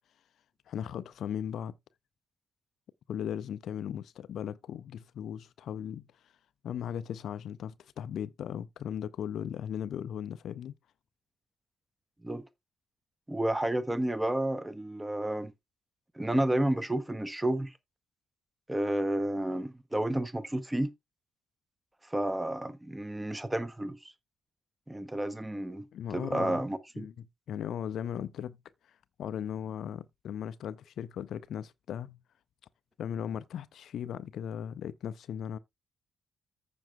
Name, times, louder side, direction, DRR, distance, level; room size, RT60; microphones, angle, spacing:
voice 1, 0.7-1.7 3.1-6.0 6.6-10.7 25.9-26.6 27.0-28.6 28.9-32.2 33.0-35.6, left 9 dB, 55° left, 0.4 m, -37 dB
voice 2, 13.3-15.5 16.2-17.7 18.7-20.9 22.1-24.1 24.9-25.9 26.1-27.1, right 1 dB, 10° right, 0.8 m, -31 dB
14.5 x 5.2 x 2.3 m
figure-of-eight pair, 40°, 0 cm